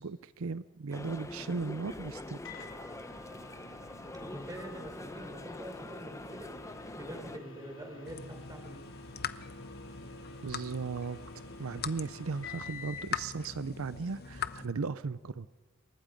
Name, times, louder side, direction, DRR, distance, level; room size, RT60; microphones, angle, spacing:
voice 1, 0.0-2.4 10.4-11.2 11.6-15.5, right 4 dB, 80° right, 15 dB, 0.6 m, -36 dB
sound 1, 0.9-7.4, left 2 dB, 15° left, 0.8 m, -44 dB
Microwave oven, 2.4-13.2, left 3 dB, 65° left, 3.6 m, -49 dB
voice 2, 4.2-6.5 7.0-8.8, right 1 dB, 20° right, 2 dB, 4.6 m, -45 dB
sound 2, 8.0-14.7, left 8 dB, 50° left, 0.8 m, -42 dB
28.0 x 23.0 x 5.2 m, 1.2 s
head